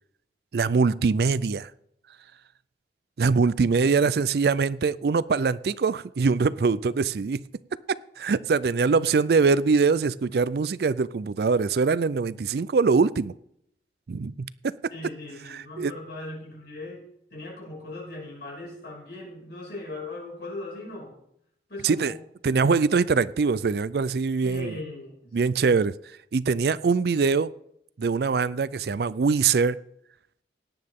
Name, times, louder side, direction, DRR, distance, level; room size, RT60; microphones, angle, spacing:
voice 1, 0.5-1.7 3.2-7.4 7.9-13.3 14.1-14.7 15.8-15.9 21.8-22.1 22.4-24.7 25.3-25.9 26.3-27.5 28.0-29.8, right 4 dB, 60° right, 0.4 m, -23 dB
voice 2, 3.5-4.0 14.9-17.0 17.3-21.2 21.7-22.2 24.4-25.7, left 2 dB, 65° left, 5.9 m, -39 dB
17.5 x 9.6 x 3.7 m
head